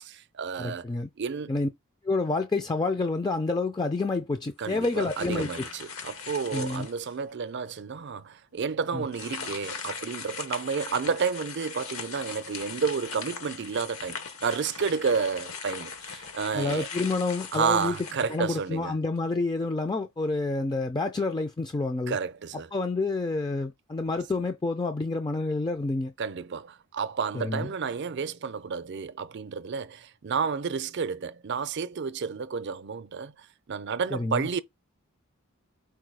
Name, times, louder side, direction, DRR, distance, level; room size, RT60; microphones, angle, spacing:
voice 1, 0.0-0.8 1.2-1.5 4.6-16.9 17.5-19.0 22.1-22.7 26.2-34.6, right 5 dB, 55° right, 0.5 m, -31 dB
voice 2, 0.6-1.1 1.5-1.7 2.0-5.6 6.5-6.9 8.9-9.1 16.5-18.0 18.3-22.2 22.7-26.1 27.3-27.7 34.1-34.5, left 3 dB, 20° left, 0.4 m, -28 dB
sound 1, 4.6-7.1 7.7-7.8 9.1-18.9, left 5 dB, 75° left, 1.0 m, -40 dB
4.7 x 2.2 x 4.6 m
head